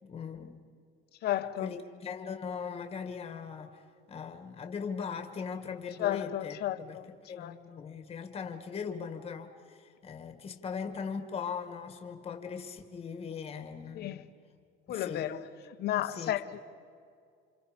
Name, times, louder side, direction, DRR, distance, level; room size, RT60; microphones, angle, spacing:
voice 1, 0.0-0.7 1.6-14.3 14.9-15.3 16.0-16.4, left 6 dB, 30° left, 6 dB, 2.0 m, -40 dB
voice 2, 1.2-1.8 6.0-7.1 7.4-7.6 13.9-14.3 14.9-15.4 15.7-16.6, left 12 dB, 50° left, 9 dB, 1.2 m, -33 dB
29.0 x 27.5 x 5.3 m, 2.4 s
cardioid pair, 160°, 21 cm